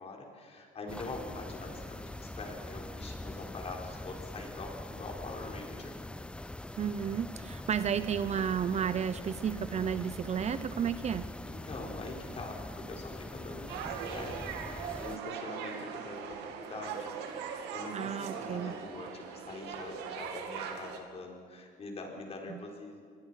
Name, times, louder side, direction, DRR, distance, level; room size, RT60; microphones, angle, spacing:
voice 1, 0.0-6.0 11.5-17.1 17.7-23.2, left 3 dB, 35° left, 1 dB, 4.6 m, -44 dB
sound 1, 0.9-15.2, left 1 dB, 5° left, 0.7 m, -43 dB
voice 2, 6.8-11.3 17.9-18.7 22.5-22.6, right 8 dB, 40° right, 13 dB, 0.7 m, -32 dB
sound 2, 13.7-21.0, right 7 dB, 85° right, 2.5 m, -40 dB
25.5 x 20.5 x 5.8 m, 2.1 s
cardioid pair, 110°, 17 cm